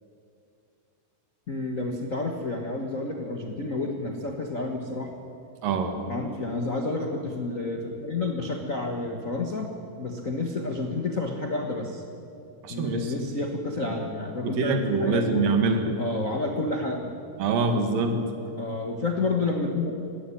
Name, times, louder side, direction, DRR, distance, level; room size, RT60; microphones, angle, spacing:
voice 1, 1.5-5.1 6.1-9.7 9.9-12.0 12.7-15.4 16.0-17.1 18.6-19.9, left 2 dB, 55° left, 2 dB, 0.8 m, -30 dB
voice 2, 5.6-6.1 12.6-13.1 13.8-13.9 14.4-16.0 17.4-18.3, right 3 dB, 85° right, 6 dB, 3.6 m, -25 dB
19.5 x 16.0 x 10.0 m, 2.7 s
omnidirectional pair, 3.8 m